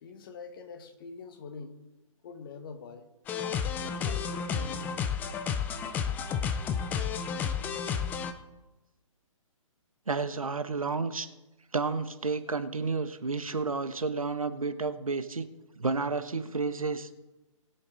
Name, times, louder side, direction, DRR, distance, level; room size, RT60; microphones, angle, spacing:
voice 1, 0.0-1.8 2.2-3.1 3.7-5.1, left 5 dB, 40° left, 8 dB, 1.5 m, -45 dB
sound 1, 3.3-8.3, left 7 dB, 10° left, 0.4 m, -31 dB
voice 2, 10.1-11.3 11.7-15.5 15.8-17.1, right 4 dB, 85° right, 11 dB, 1.0 m, -31 dB
20.5 x 6.9 x 3.7 m, 1.1 s
figure-of-eight pair, 135°, 17 cm